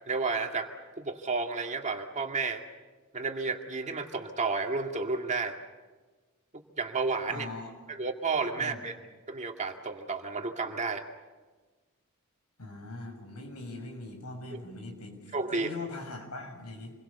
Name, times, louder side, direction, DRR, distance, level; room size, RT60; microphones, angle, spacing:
voice 1, 0.1-0.7 1.0-2.6 3.1-5.6 6.8-7.5 7.9-9.0 9.3-11.0 14.5-14.6 15.3-15.7, right 4 dB, 35° right, 4 dB, 2.1 m, -31 dB
voice 2, 7.3-7.7 8.6-8.8 12.6-16.9, left 2 dB, 85° left, 4 dB, 6.4 m, -41 dB
28.0 x 22.0 x 7.0 m, 1.3 s
head